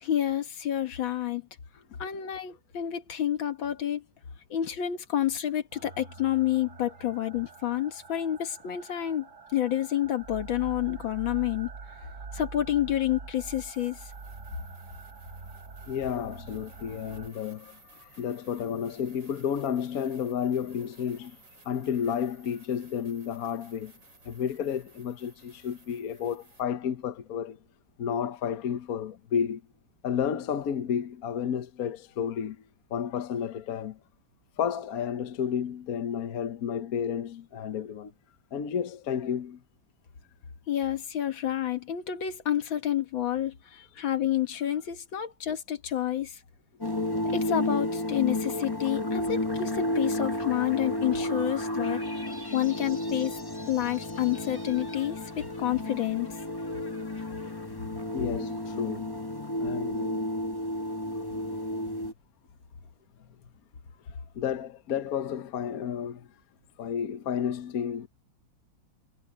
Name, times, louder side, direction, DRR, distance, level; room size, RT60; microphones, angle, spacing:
voice 1, 0.0-1.4 2.0-4.0 4.5-9.3 9.5-11.7 12.3-14.0 40.7-43.5 44.0-46.3 47.3-52.0 52.5-53.4 53.7-55.2 55.6-56.3, left 11 dB, 75° left, 2.2 m, -29 dB
voice 2, 1.9-2.2 15.9-21.4 21.6-23.9 24.2-27.6 28.0-29.6 30.0-32.6 32.9-34.0 34.6-38.1 38.5-39.6 43.7-43.9 58.1-59.2 59.5-60.3 61.5-61.7 64.3-66.3 66.8-68.1, left 8 dB, 55° left, 1.3 m, -31 dB
sound 1, 5.7-17.3, right 4 dB, 40° right, 1.8 m, -45 dB
sound 2, 13.3-26.6, right 2 dB, 70° right, 7.4 m, -57 dB
sound 3, 46.8-62.1, left 1 dB, 15° left, 1.4 m, -32 dB
omnidirectional pair, 2.1 m